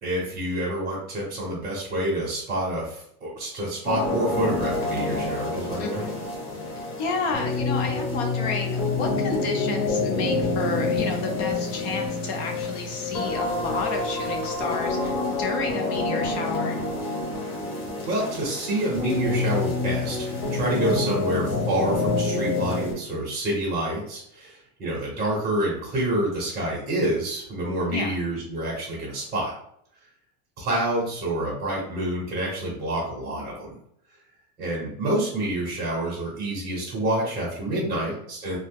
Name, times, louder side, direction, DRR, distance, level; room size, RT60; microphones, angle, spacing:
voice 1, 0.0-6.0 18.1-29.5 30.6-33.8 34.6-38.6, right 1 dB, 15° right, -6 dB, 0.8 m, -28 dB
sound 1, 3.8-22.9, left 3 dB, 80° left, 1.5 m, -27 dB
voice 2, 5.8-6.2 6.8-16.8 20.9-21.3 27.9-28.1 37.9-38.2, left 4 dB, 45° left, 2 dB, 0.7 m, -31 dB
2.9 x 2.1 x 3.3 m, 0.69 s
supercardioid pair, 155°, 46 cm